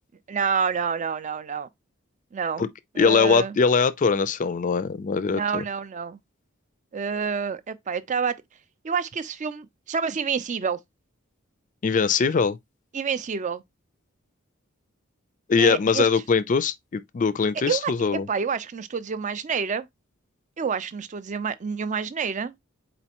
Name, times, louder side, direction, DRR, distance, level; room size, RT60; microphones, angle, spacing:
voice 1, 0.3-1.7 2.3-2.7 2.9-3.6 5.3-6.2 6.9-8.4 8.8-10.8 12.9-13.6 15.6-16.1 17.7-19.9 20.6-22.5, right 6 dB, 35° right, 0.4 m, -28 dB
voice 2, 3.0-5.6 11.8-12.6 15.5-18.3, left 5 dB, 40° left, 0.4 m, -22 dB
4.2 x 4.1 x 2.9 m
head